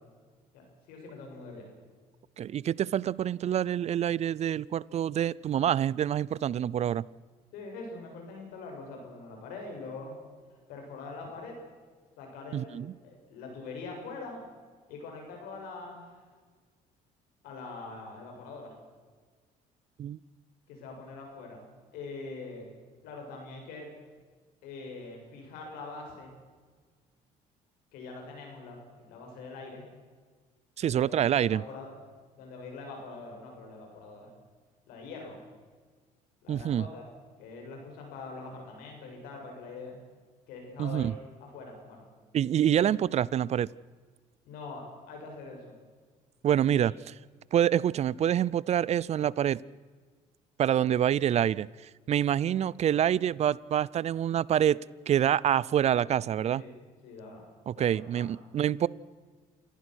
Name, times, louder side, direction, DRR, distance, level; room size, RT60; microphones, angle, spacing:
voice 1, 0.5-1.7 7.5-10.2 10.7-11.6 12.2-14.4 14.9-16.2 17.4-18.8 20.7-21.7 21.9-22.7 23.0-23.9 24.6-26.3 27.9-29.9 30.8-31.9 32.4-34.3 34.9-35.4 36.4-37.1 37.4-40.0 40.5-41.1 41.4-42.1 44.5-45.7 46.6-46.9 56.5-56.7 57.0-57.4 57.7-58.3, left 3 dB, 85° left, 2 dB, 7.2 m, -43 dB
voice 2, 2.4-7.0 12.5-12.9 20.0-20.2 30.8-31.6 36.5-36.9 40.8-41.1 42.3-43.7 46.4-46.9 47.5-49.6 50.6-51.7 52.1-54.8 55.1-56.6 57.7-58.9, right 10 dB, 45° right, 23 dB, 0.5 m, -26 dB
29.0 x 15.5 x 6.3 m, 1.5 s
cardioid pair, 90°, 15 cm